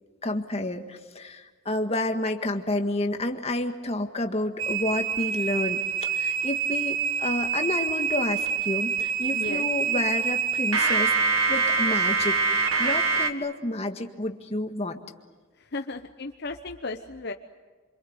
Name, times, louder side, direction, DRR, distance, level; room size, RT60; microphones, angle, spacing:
voice 1, 0.2-15.0, left 1 dB, 30° left, 5 dB, 1.8 m, -30 dB
sound 1, 4.6-13.3, right 5 dB, 90° right, 1.8 m, -25 dB
voice 2, 9.3-9.7 15.6-17.3, left 3 dB, 55° left, 4 dB, 1.0 m, -35 dB
26.5 x 25.0 x 8.1 m, 1.4 s
head